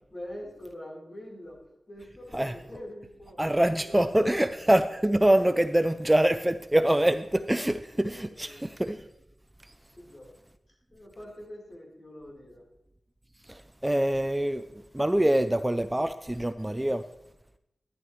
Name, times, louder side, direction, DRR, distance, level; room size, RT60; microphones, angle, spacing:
voice 1, 0.1-1.6 1.9-3.4 3.7-4.5 7.7-7.8 8.2-8.8 10.0-10.3 10.9-12.6, left 1 dB, 45° left, 3.5 m, -44 dB
voice 2, 3.4-9.1 9.6-9.7 13.4-17.0, right 1 dB, 15° right, 0.4 m, -25 dB
11.5 x 11.0 x 3.1 m
cardioid pair, 65°, 0 cm